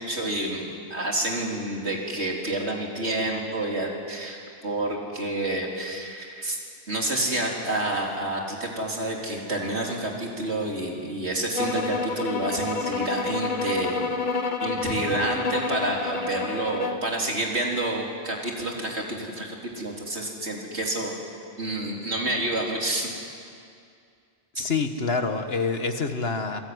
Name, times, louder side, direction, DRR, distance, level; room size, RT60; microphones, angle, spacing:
voice 1, 0.0-6.6 6.9-14.0 14.6-21.1 21.6-23.1, right 1 dB, 80° right, -1 dB, 4.2 m, -29 dB
sound 1, 11.5-17.1, left 3 dB, 45° left, 1.3 m, -29 dB
voice 2, 24.6-26.6, left 4 dB, 65° left, 7 dB, 1.9 m, -26 dB
27.0 x 21.0 x 9.7 m, 2.3 s
omnidirectional pair, 1.1 m